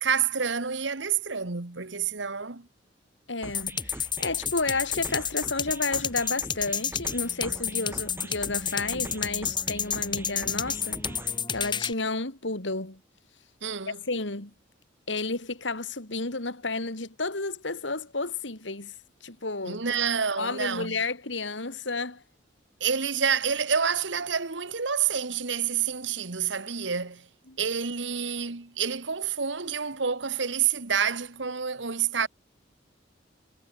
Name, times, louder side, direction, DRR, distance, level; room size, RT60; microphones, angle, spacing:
voice 1, 0.0-2.7 13.6-14.0 19.6-21.0 22.8-27.3 27.6-32.3, right 7 dB, 75° right, 1.6 m, -28 dB
voice 2, 3.3-11.0 11.5-13.0 14.1-14.5 15.1-18.9 19.2-19.8 20.4-22.2 27.5-27.6, left 3 dB, 75° left, 3.0 m, -31 dB
sound 1, 3.4-11.4, right 1 dB, 10° right, 5.1 m, -44 dB
sound 2, 3.5-11.9, left 7 dB, 25° left, 4.4 m, -30 dB
head